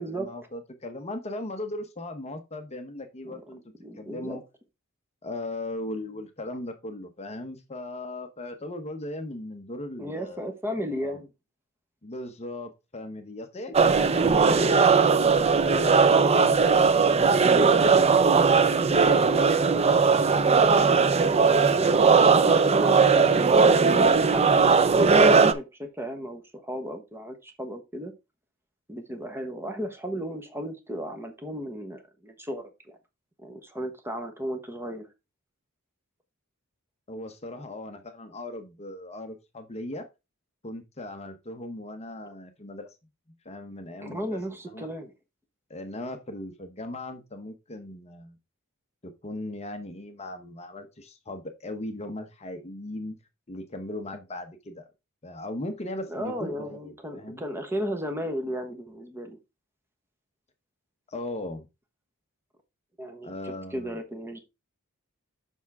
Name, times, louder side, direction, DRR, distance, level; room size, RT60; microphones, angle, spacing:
voice 1, 0.0-3.6 3.9-4.4 5.2-10.5 11.0-11.2 12.0-17.0 37.1-40.1 40.6-43.0 43.4-44.4 44.7-44.9 45.7-48.4 49.0-53.2 53.5-54.9 55.2-57.4 61.1-61.7 63.2-64.0, left 1 dB, 30° left, 0.9 m, -38 dB
voice 2, 3.8-4.4 10.0-11.3 13.7-13.8 19.3-21.3 22.3-28.1 28.9-33.0 33.4-35.1 44.0-45.1 56.1-59.4 63.0-64.4, equal, 10° right, 1.1 m, -35 dB
sound 1, 13.7-25.5, right 5 dB, 30° right, 0.5 m, -19 dB
7.1 x 5.7 x 3.5 m
head